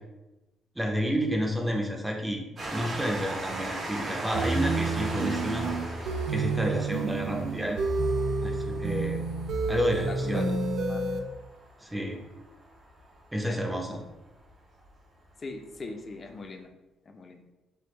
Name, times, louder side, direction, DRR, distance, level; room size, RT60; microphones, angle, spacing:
voice 1, 0.8-5.6 6.3-7.8 8.4-9.2 9.7-10.6 11.8-12.2 13.3-14.0, equal, 10° right, 1 dB, 0.6 m, -30 dB
Train, 2.6-13.7 14.5-14.6 14.8-14.9, right 1 dB, 40° right, 1.3 m, -39 dB
sound 1, 4.3-11.2, right 3 dB, 80° right, 0.3 m, -29 dB
voice 2, 10.0-10.5 10.9-11.0 13.5-13.6 15.4-16.7 17.1-17.4, left 3 dB, 40° left, 5 dB, 0.4 m, -40 dB
3.4 x 2.1 x 3.1 m, 1.0 s
cardioid pair, 90°, 0 cm